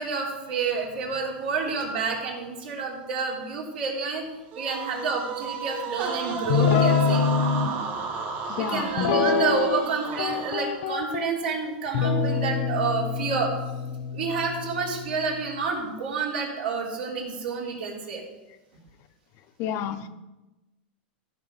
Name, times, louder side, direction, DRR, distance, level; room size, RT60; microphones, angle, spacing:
voice 1, 0.0-4.2 4.5-7.2 8.5-13.5 14.1-18.2, right 5 dB, 80° right, -2 dB, 3.4 m, -29 dB
sound 1, 4.5-10.9, right 5 dB, 40° right, 2.5 m, -33 dB
Guitar, 6.5-7.7 9.0-9.9 10.2-11.3 11.9-15.4, left 5 dB, 65° left, 1.0 m, -25 dB
voice 2, 8.5-8.9 19.6-20.1, left 9 dB, 45° left, 9 dB, 0.7 m, -30 dB
14.5 x 5.3 x 5.3 m, 1.1 s
supercardioid pair, 135°, 6 cm